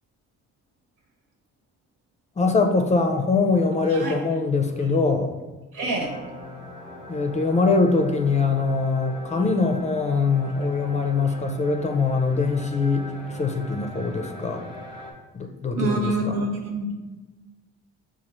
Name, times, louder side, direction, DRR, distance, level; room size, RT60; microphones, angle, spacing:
voice 1, 2.4-5.3 7.1-14.6 15.3-16.3, left 4 dB, 25° left, 4 dB, 0.4 m, -23 dB
voice 2, 5.7-6.2 15.8-16.9, right 2 dB, 90° right, 0 dB, 0.8 m, -26 dB
sound 1, 6.0-15.1, left 1 dB, 15° right, 0.9 m, -41 dB
5.3 x 2.4 x 3.0 m, 1.2 s
cardioid pair, 90°, 30 cm